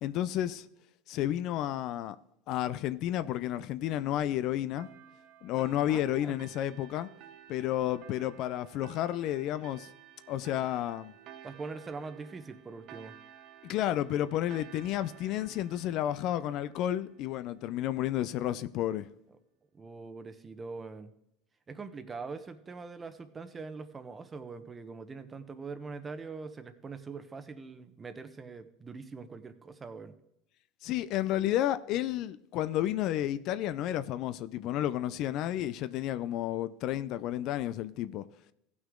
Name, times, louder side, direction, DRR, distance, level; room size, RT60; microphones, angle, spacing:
voice 1, 0.0-0.6 1.1-2.2 2.5-4.9 5.4-7.1 7.5-9.9 10.3-11.1 13.6-19.1 30.8-38.2, left 12 dB, 60° left, 0.5 m, -31 dB
sound 1, 4.8-17.9, right 10 dB, 55° right, 0.9 m, -54 dB
voice 2, 5.9-6.3 11.4-13.1 19.7-21.1 21.7-30.1, right 4 dB, 25° right, 1.0 m, -43 dB
15.5 x 6.0 x 3.7 m
supercardioid pair, 100°, 0 cm